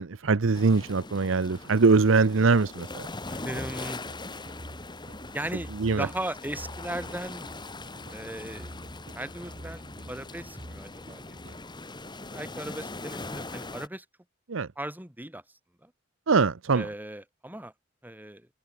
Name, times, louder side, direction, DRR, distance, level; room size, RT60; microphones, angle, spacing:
voice 1, 0.0-3.1 5.8-6.1 14.5-14.7 16.3-16.9, right 4 dB, 70° right, 0.7 m, -22 dB
sound 1, 0.5-13.9, left 2 dB, 20° left, 2.0 m, -41 dB
voice 2, 3.3-4.0 5.3-5.7 6.0-7.5 8.1-8.8 9.1-9.8 10.1-11.4 11.7-11.8 12.0-14.1 14.8-15.4 15.8-15.9 16.7-17.7 18.0-18.5, right 1 dB, 10° right, 4.1 m, -37 dB
sound 2, 3.6-11.6, equal, 45° right, 5.4 m, -47 dB
head